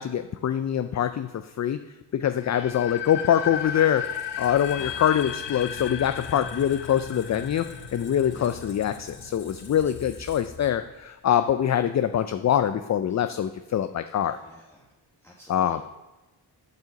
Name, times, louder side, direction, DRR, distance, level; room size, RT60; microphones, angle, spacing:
voice 1, 0.0-1.8 2.1-4.0 4.4-7.7 7.9-14.4 15.5-15.8, left 10 dB, 40° left, 10 dB, 0.4 m, -24 dB
sound 1, 2.4-9.3, left 9 dB, 80° left, 0.7 m, -35 dB
Squeak, 3.5-11.2, left 4 dB, 60° left, 1.6 m, -43 dB
voice 2, 4.6-5.3 8.3-8.7 14.2-14.9 15.2-15.8, left 1 dB, 5° left, -2 dB, 1.1 m, -49 dB
9.1 x 5.5 x 6.7 m, 1.0 s
cardioid pair, 85°, 43 cm